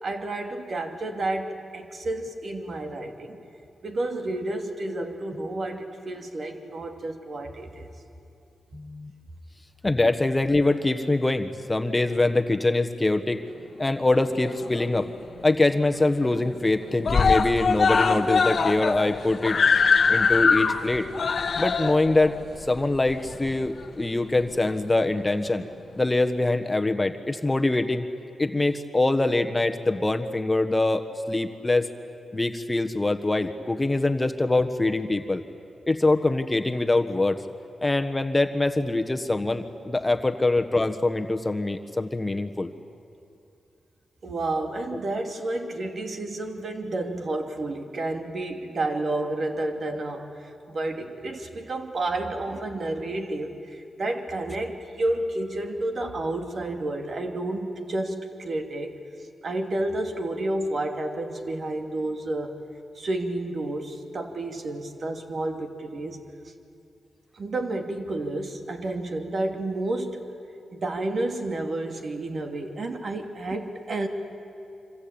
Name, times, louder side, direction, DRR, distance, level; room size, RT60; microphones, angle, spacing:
voice 1, 0.0-3.4 3.8-7.9 44.2-62.5 62.9-66.5 67.3-70.3 70.7-74.1, right 2 dB, 55° right, 4 dB, 2.7 m, -30 dB
voice 2, 8.7-9.1 9.8-13.4 13.8-15.1 15.4-19.6 20.1-21.1 21.6-25.7 26.0-28.1 28.4-31.9 32.3-35.4 35.9-37.4 37.8-42.7, left 2 dB, 20° left, 6 dB, 1.4 m, -24 dB
Screaming, 14.1-15.1 15.4-15.5 15.8-15.9 16.2-16.7 17.0-23.8 24.7-24.8, left 5 dB, 60° left, 1.2 m, -23 dB
26.0 x 26.0 x 8.8 m, 2.5 s
cardioid pair, 70°, 0 cm